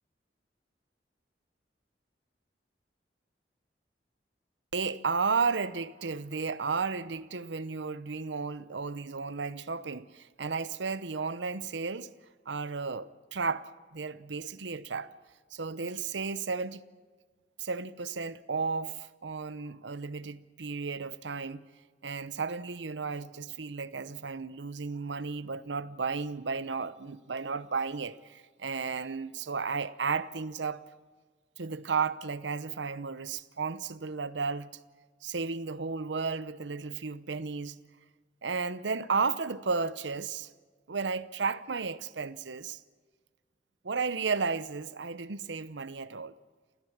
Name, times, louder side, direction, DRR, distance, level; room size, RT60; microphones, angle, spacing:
voice 1, 4.7-12.1 12.5-15.1 15.5-16.8 17.6-21.7 22.0-30.8 31.6-34.7 35.2-37.8 38.4-40.5 40.9-42.8 43.8-46.3, right 4 dB, 80° right, 0.8 m, -33 dB
29.5 x 14.0 x 7.3 m
head